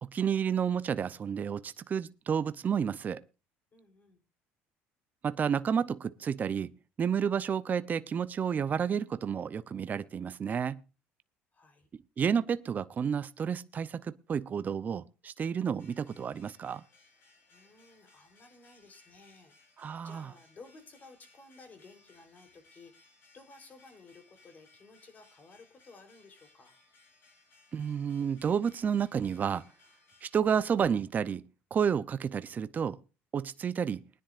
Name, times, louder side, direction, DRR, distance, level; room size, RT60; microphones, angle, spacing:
voice 1, 0.0-3.2 5.2-10.8 12.2-16.8 19.8-20.3 27.7-29.7 30.2-33.0 33.3-34.1, right 7 dB, 35° right, 0.6 m, -31 dB
voice 2, 3.7-4.2 11.5-11.9 17.5-19.5 20.0-22.9 23.3-26.8, left 3 dB, 35° left, 3.7 m, -55 dB
sound 1, 15.8-30.4, left 3 dB, 50° left, 6.8 m, -63 dB
22.0 x 10.0 x 2.5 m
cardioid pair, 110°, 5 cm